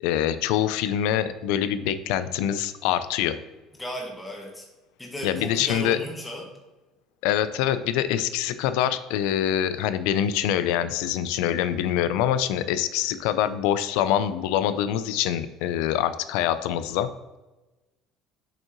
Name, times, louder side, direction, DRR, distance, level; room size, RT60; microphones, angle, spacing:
voice 1, 0.0-3.4 5.2-6.0 7.2-17.1, left 10 dB, 90° left, 12 dB, 0.4 m, -25 dB
voice 2, 3.8-4.7 5.0-6.5, equal, 5° left, -1 dB, 1.0 m, -35 dB
7.1 x 5.4 x 3.0 m, 1.1 s
cardioid pair, 175°, 0 cm